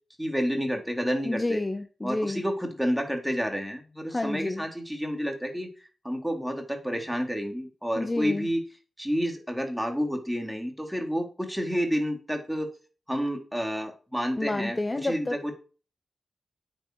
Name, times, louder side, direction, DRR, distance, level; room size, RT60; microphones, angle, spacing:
voice 1, 0.2-1.6 2.0-5.7 6.0-8.6 9.0-12.7 13.1-14.8 15.0-15.5, equal, ahead, 3.7 m, -29 dB
voice 2, 1.2-2.4 4.1-4.6 8.0-8.5 14.4-15.4, left 2 dB, 20° left, 1.0 m, -29 dB
9.4 x 8.2 x 6.5 m
wide cardioid pair, 90°, 0 cm